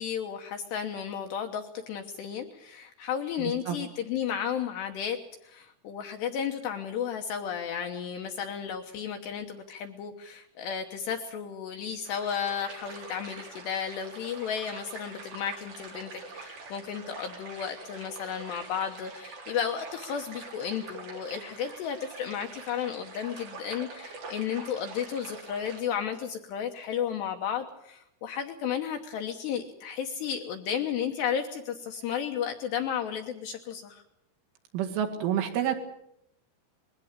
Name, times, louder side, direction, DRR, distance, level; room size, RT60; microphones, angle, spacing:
voice 1, 0.0-34.0, left 8 dB, 70° left, 5 dB, 2.9 m, -33 dB
voice 2, 3.4-3.8 34.7-35.8, right 10 dB, 75° right, 4 dB, 4.4 m, -29 dB
sound 1, 12.0-25.8, right 3 dB, 45° right, 5.5 m, -45 dB
21.5 x 16.5 x 8.8 m, 0.78 s
omnidirectional pair, 5.9 m